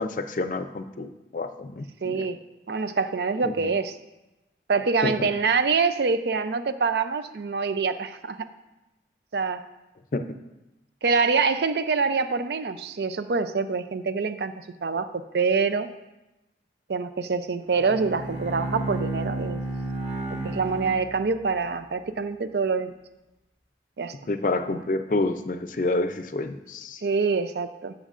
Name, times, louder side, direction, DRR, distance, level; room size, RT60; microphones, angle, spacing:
voice 1, 0.0-2.3 3.4-3.7 5.0-5.1 10.1-10.2 24.3-27.0, left 2 dB, 45° left, 9 dB, 0.5 m, -28 dB
voice 2, 2.0-2.4 2.7-4.0 4.7-8.5 9.3-9.6 11.0-14.5 14.8-15.1 15.3-15.9 16.9-19.6 20.4-22.9 24.0-24.1 27.0-27.9, right 4 dB, 70° right, 11 dB, 0.5 m, -25 dB
Bowed string instrument, 17.6-21.7, right 2 dB, 40° right, 1.1 m, -32 dB
13.5 x 7.2 x 2.5 m, 0.98 s
head